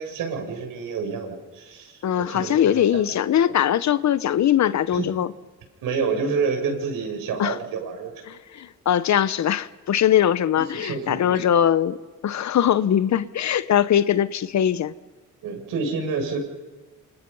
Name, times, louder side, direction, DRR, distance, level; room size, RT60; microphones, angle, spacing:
voice 1, 0.0-2.9 4.9-5.0 5.8-8.1 10.7-11.4 15.4-16.4, right 5 dB, 85° right, 7.4 m, -28 dB
voice 2, 2.0-5.3 7.4-7.6 8.3-12.0 12.2-14.9, left 10 dB, 60° left, 1.1 m, -21 dB
27.5 x 27.5 x 5.7 m
cardioid pair, 95°, 32 cm